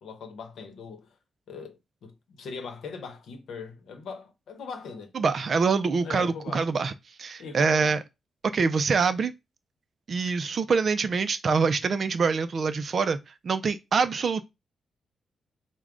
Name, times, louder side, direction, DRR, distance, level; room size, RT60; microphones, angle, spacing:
voice 1, 0.0-1.1 1.5-5.1 6.0-6.7 7.4-8.0, left 5 dB, 75° left, 0.8 m, -40 dB
voice 2, 5.1-6.9 7.2-8.0 8.5-9.3 10.1-13.2 13.4-14.4, right 5 dB, 40° right, 0.3 m, -25 dB
4.7 x 2.1 x 3.6 m
wide cardioid pair, 165°, 0 cm